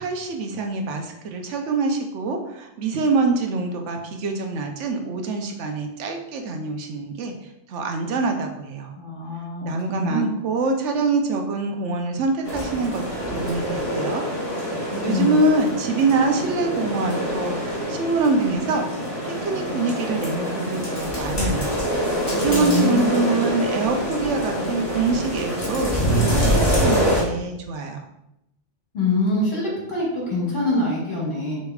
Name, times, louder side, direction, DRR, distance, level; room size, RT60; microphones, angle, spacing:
voice 1, 0.0-7.3 7.7-8.9 9.6-14.2 15.0-18.9 19.2-21.8 22.3-28.0, right 3 dB, 80° right, 4 dB, 0.9 m, -25 dB
voice 2, 9.0-10.3 14.9-15.3 22.5-23.0 28.9-31.6, left 2 dB, 45° left, -6 dB, 1.8 m, -24 dB
sound 1, 12.4-27.2, equal, 20° left, 1.4 m, -25 dB
6.6 x 3.1 x 2.3 m, 0.84 s
omnidirectional pair, 1.2 m